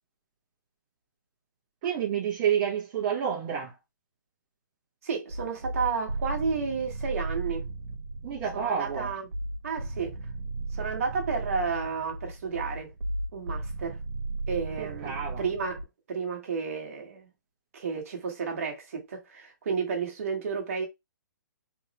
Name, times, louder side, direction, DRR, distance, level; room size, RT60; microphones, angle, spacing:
voice 1, 1.8-3.7 8.2-9.1 14.8-15.4, right 8 dB, 25° right, 1.1 m, -29 dB
voice 2, 5.0-7.7 8.5-9.3 9.6-10.2 10.7-12.9 13.3-14.0 14.5-17.3 17.7-20.9, right 5 dB, 45° right, 1.5 m, -32 dB
Dark Ambient Drone, 5.3-15.8, right 2 dB, 70° right, 1.3 m, -36 dB
3.6 x 3.1 x 2.9 m
hypercardioid pair, 170°, 11 cm